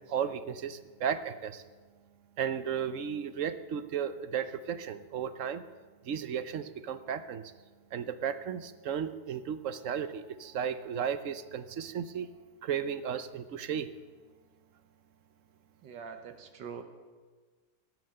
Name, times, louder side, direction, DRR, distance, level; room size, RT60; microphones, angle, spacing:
voice 1, 0.1-1.6 2.4-5.6 6.1-7.4 7.9-12.3 12.6-13.9, right 8 dB, 60° right, 12 dB, 0.9 m, -34 dB
voice 2, 15.8-16.8, right 6 dB, 80° right, 7 dB, 1.9 m, -43 dB
17.5 x 9.3 x 7.8 m, 1.4 s
omnidirectional pair, 1.9 m